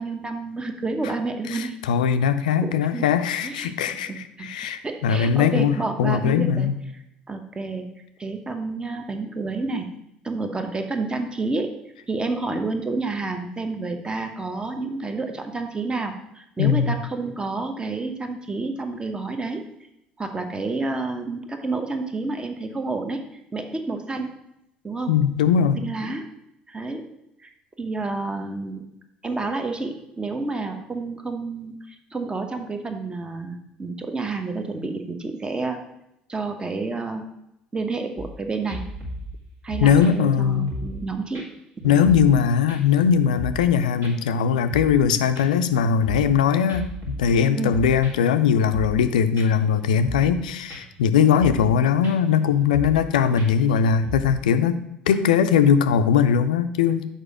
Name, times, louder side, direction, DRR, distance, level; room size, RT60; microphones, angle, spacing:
voice 1, 0.0-1.8 2.6-3.1 3.4-3.7 4.1-6.7 7.3-7.9 8.2-9.9 10.2-11.7 12.1-19.6 20.2-23.2 23.5-24.3 24.8-25.1 25.6-26.2 26.7-27.0 27.4-27.5 27.8-28.8 29.2-35.8 36.3-37.3 37.7-38.8 39.6-41.4 41.8-42.0 47.6-47.8, right 3 dB, 20° right, 6 dB, 0.9 m, -29 dB
voice 2, 1.5-6.8 16.6-17.0 25.1-25.8 39.8-40.7 41.8-54.8 55.1-57.1, left 7 dB, 75° left, 10 dB, 0.4 m, -20 dB
sound 1, 38.2-38.4 38.7-41.1 41.3-41.5 41.8-42.4 42.7-43.7 44.0-44.1 44.5-45.1 45.4-46.4 46.7-48.4 48.7-49.1 49.4-49.5 49.8-50.4 50.7-51.0 51.4-51.7 52.0-52.2 52.5-53.1 53.4-54.4, equal, 40° right, 1.8 m, -35 dB
6.7 x 4.5 x 4.9 m, 0.82 s
figure-of-eight pair, 60°, 4 cm